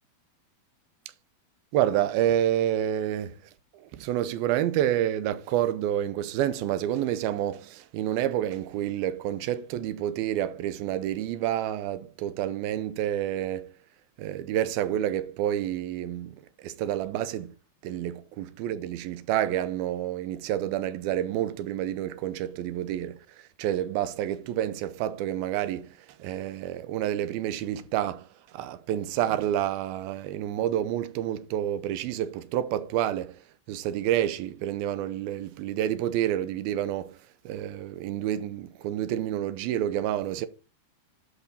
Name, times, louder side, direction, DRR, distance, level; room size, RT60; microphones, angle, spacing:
voice 1, 1.7-3.3 3.7-13.7 14.2-17.5 17.8-23.2 23.6-28.3 28.5-33.4 33.7-37.2 37.5-40.5, right 11 dB, 85° right, 2.5 m, -29 dB
11.5 x 5.8 x 4.3 m
omnidirectional pair, 4.4 m